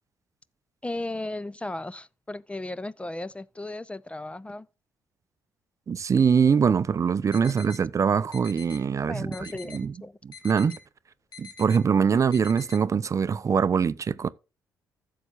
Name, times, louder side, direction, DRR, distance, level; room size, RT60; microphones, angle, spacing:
voice 1, 0.8-4.7 7.4-7.5 9.1-10.2, left 2 dB, 15° left, 0.4 m, -35 dB
voice 2, 5.9-9.9 10.2-10.8 11.4-14.3, right 6 dB, 40° right, 0.5 m, -23 dB
sound 1, 7.3-7.8 8.3-8.8 9.3-9.8 10.3-10.8 11.3-11.8 12.3-12.8, left 6 dB, 55° left, 2.1 m, -44 dB
15.0 x 6.7 x 2.4 m
hypercardioid pair, 45°, 8 cm